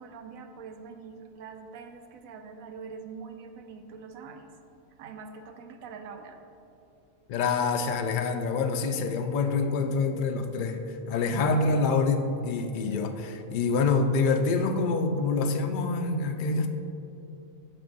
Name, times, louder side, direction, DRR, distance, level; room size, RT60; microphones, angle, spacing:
voice 1, 0.0-4.5 5.0-6.4, right 5 dB, 80° right, 6 dB, 1.0 m, -44 dB
voice 2, 7.3-16.7, left 4 dB, 80° left, 6 dB, 0.4 m, -26 dB
7.7 x 5.3 x 4.0 m, 2.8 s
omnidirectional pair, 1.4 m